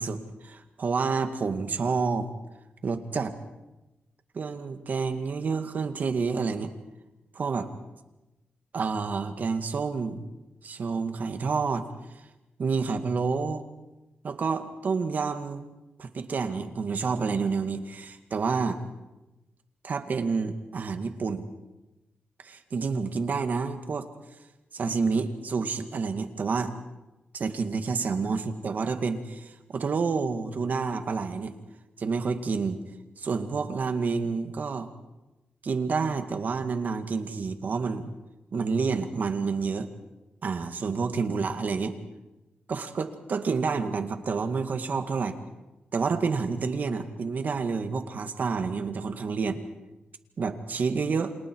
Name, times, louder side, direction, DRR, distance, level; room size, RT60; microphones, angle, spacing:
voice 1, 0.0-2.3 2.8-3.3 4.3-6.7 7.3-7.7 8.7-10.2 10.6-11.9 12.6-13.6 14.2-15.6 16.0-18.8 19.8-21.5 22.4-24.1 24.7-26.7 27.3-31.5 32.0-32.8 33.2-34.9 35.6-38.1 38.5-39.9 40.4-42.0 42.7-45.4 45.9-49.6 50.4-51.3, right 5 dB, 55° right, 7 dB, 2.1 m, -29 dB
29.5 x 27.5 x 4.8 m, 1.0 s
cardioid pair, 100°, 3 cm